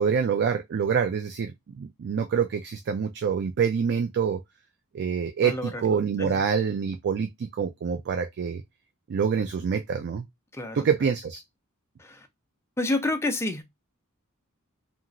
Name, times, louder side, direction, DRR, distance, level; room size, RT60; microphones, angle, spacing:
voice 1, 0.0-4.4 4.9-8.6 9.1-10.3 10.7-11.4, right 6 dB, 50° right, 0.3 m, -26 dB
voice 2, 5.4-5.8 6.2-6.4 10.5-10.8 12.0-12.3 12.8-13.6, left 2 dB, 10° left, 0.5 m, -29 dB
2.9 x 2.4 x 2.4 m
head